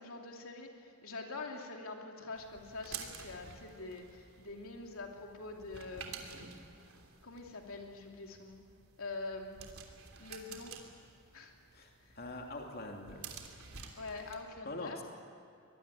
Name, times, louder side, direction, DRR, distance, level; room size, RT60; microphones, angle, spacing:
voice 1, 0.0-6.2 7.2-8.6 9.0-9.6 10.2-10.7 11.3-11.5 12.0-12.1 13.9-15.0, left 3 dB, 75° left, 1 dB, 2.9 m, -45 dB
sound 1, 2.4-14.4, right 6 dB, 75° right, 3.2 m, -51 dB
voice 2, 11.7-13.3 14.6-15.0, left 2 dB, 45° left, 1 dB, 2.8 m, -44 dB
24.5 x 20.5 x 9.8 m, 2.5 s
head